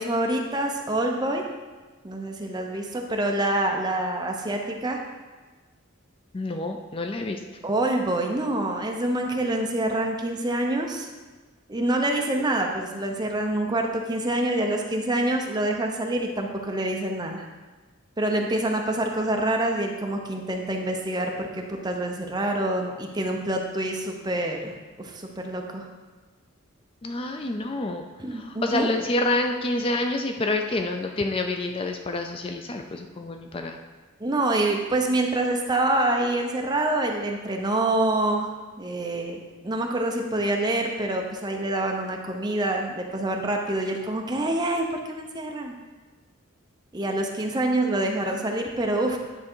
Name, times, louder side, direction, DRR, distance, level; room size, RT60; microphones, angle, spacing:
voice 1, 0.0-1.4 2.0-5.0 7.6-11.1 11.7-17.4 18.2-25.9 28.2-28.9 34.2-38.5 38.8-39.4 39.6-45.7 46.9-49.2, right 1 dB, 20° right, 2 dB, 0.7 m, -26 dB
voice 2, 6.3-7.4 27.0-28.0 28.3-33.8, left 2 dB, 25° left, 4 dB, 0.4 m, -28 dB
9.8 x 3.7 x 4.5 m, 1.3 s
head